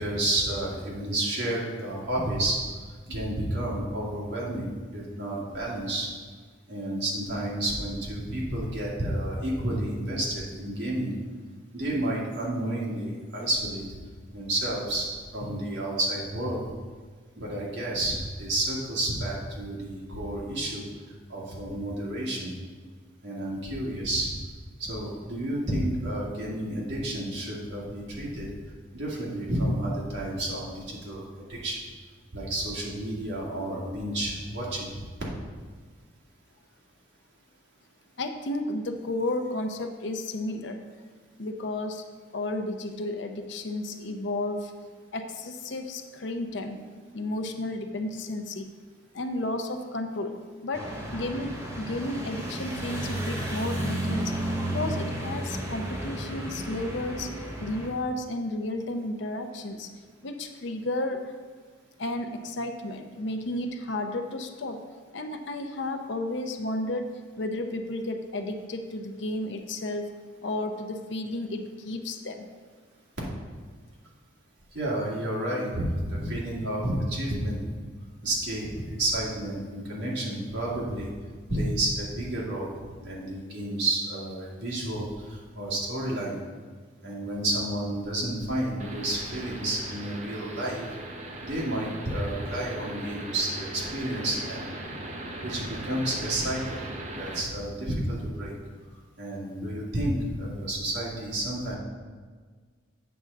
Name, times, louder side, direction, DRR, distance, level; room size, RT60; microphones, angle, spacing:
voice 1, 0.0-2.6 3.1-6.1 6.7-11.2 11.7-13.9 14.3-15.1 15.3-16.6 17.4-20.8 21.3-22.5 23.2-24.3 24.8-28.5 28.9-31.8 32.3-34.9 74.7-77.6 78.2-78.7 79.0-81.1 81.5-82.7 83.0-86.3 87.0-90.9 91.4-94.7 95.4-96.8 97.1-98.5 99.2-101.7, right 1 dB, 60° right, -4 dB, 1.9 m, -30 dB
voice 2, 38.2-40.8 41.4-42.0 42.3-44.7 45.1-46.8 47.1-48.7 49.1-50.4 50.6-54.3 54.7-57.3 57.6-59.9 60.2-61.2 62.0-64.8 65.1-70.1 70.4-72.4, left 2 dB, 65° left, 6 dB, 0.6 m, -32 dB
sound 1, 50.7-57.9, right 1 dB, 15° right, 1.0 m, -33 dB
sound 2, 88.8-97.4, right 1 dB, 35° right, 0.8 m, -39 dB
7.8 x 3.7 x 6.5 m, 1.5 s
head